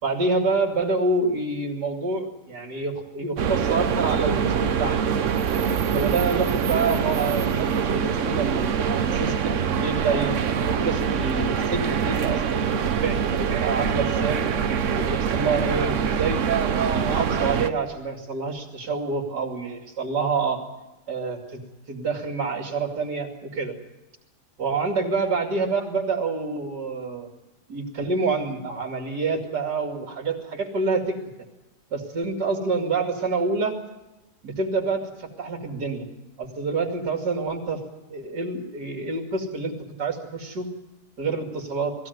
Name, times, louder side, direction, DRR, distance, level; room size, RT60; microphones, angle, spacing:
voice 1, 0.0-4.5 4.8-5.0 5.9-14.4 14.9-20.6 21.1-21.6 21.9-23.7 24.6-27.3 27.7-31.2 31.9-33.7 34.4-36.1 36.4-37.8 38.1-39.7 40.0-40.7 41.2-41.9, right 4 dB, 80° right, 2 dB, 3.3 m, -27 dB
sound 1, 3.4-17.7, right 7 dB, 55° right, 1.1 m, -24 dB
21.0 x 16.0 x 9.4 m, 1.0 s
omnidirectional pair, 1.7 m